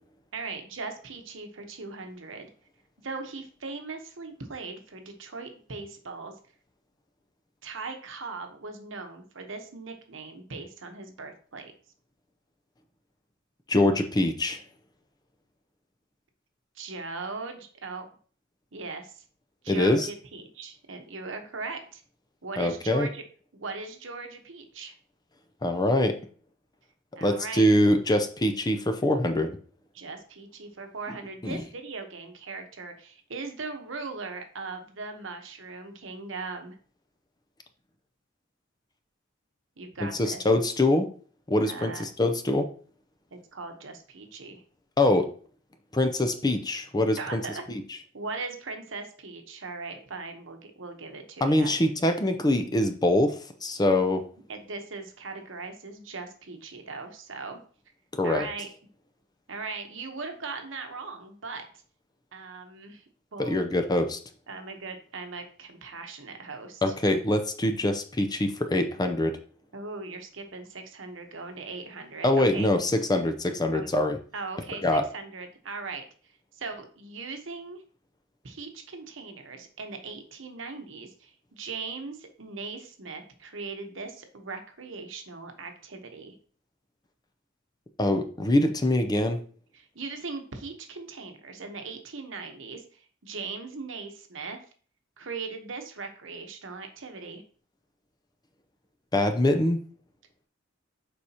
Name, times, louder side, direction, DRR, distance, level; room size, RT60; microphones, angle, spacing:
voice 1, 0.3-2.5 3.0-6.3 7.6-11.7 16.7-18.0 18.7-19.2 19.6-22.0 22.4-23.2 23.5-24.9 27.2-27.7 29.9-36.8 39.8-40.4 41.6-42.0 43.3-44.6 47.2-47.6 48.1-51.7 54.5-57.6 58.2-58.7 59.5-61.7 62.3-63.0 63.3-63.6 64.5-66.9 69.7-72.7 73.7-73.9 74.3-76.0 76.5-77.8 78.4-86.4 89.7-94.6 95.2-97.4, right 4 dB, 70° right, 5 dB, 1.0 m, -39 dB
voice 2, 13.7-14.6 19.7-20.1 22.6-23.1 25.6-26.2 27.2-29.6 31.4-31.6 40.2-41.1 41.5-42.7 45.0-45.3 45.9-47.4 51.4-54.2 58.2-58.5 63.4-64.2 66.8-69.4 72.2-74.2 74.8-75.0 88.0-89.4 99.1-99.8, left 1 dB, 20° left, 6 dB, 0.6 m, -24 dB
7.0 x 4.8 x 2.9 m, 0.43 s
head